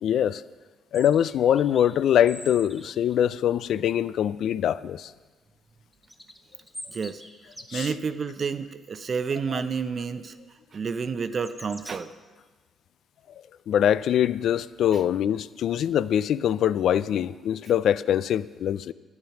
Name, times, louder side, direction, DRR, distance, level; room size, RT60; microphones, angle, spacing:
voice 1, 0.0-0.4 0.9-5.1 7.7-7.9 9.5-9.6 13.7-18.9, left 10 dB, 70° left, 0.3 m, -23 dB
sound 1, 0.9-3.1 5.9-8.0 9.5-9.7 11.2-11.9, equal, 5° left, 1.2 m, -44 dB
voice 2, 6.9-7.2 7.7-10.3 10.7-12.1, right 5 dB, 45° right, 0.7 m, -30 dB
12.0 x 9.6 x 5.8 m
cardioid pair, 90°, 0 cm